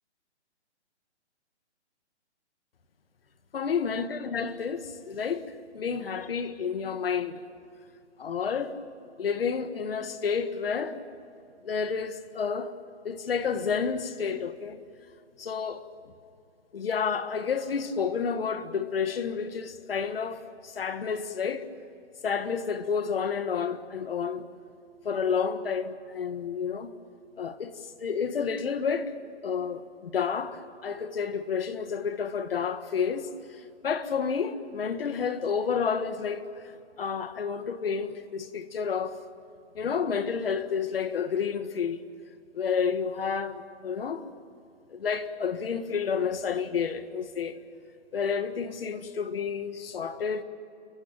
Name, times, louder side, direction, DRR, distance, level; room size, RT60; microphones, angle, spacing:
voice 1, 3.5-7.4 8.2-8.7 9.2-11.0 11.6-12.7 13.0-14.8 15.4-15.8 16.7-21.7 22.2-24.5 25.0-26.9 27.4-27.7 28.0-29.1 29.4-33.3 33.8-36.5 37.0-39.2 39.7-42.0 42.5-44.3 44.9-47.6 48.1-50.4, left 6 dB, 55° left, 1.7 m, -30 dB
30.0 x 15.0 x 8.9 m
hypercardioid pair, 165°, 35 cm